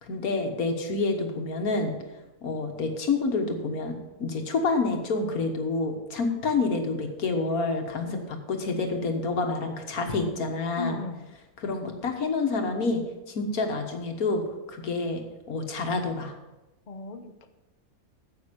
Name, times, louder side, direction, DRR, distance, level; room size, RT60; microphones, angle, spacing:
voice 1, 0.0-1.9 2.4-11.0 11.6-13.0 13.3-14.4 14.7-15.2 15.5-16.3, left 3 dB, 75° left, 4 dB, 1.8 m, -28 dB
voice 2, 10.8-11.2 16.9-17.5, left 3 dB, 40° left, 8 dB, 0.6 m, -36 dB
9.7 x 7.8 x 5.2 m, 1.0 s
omnidirectional pair, 1.6 m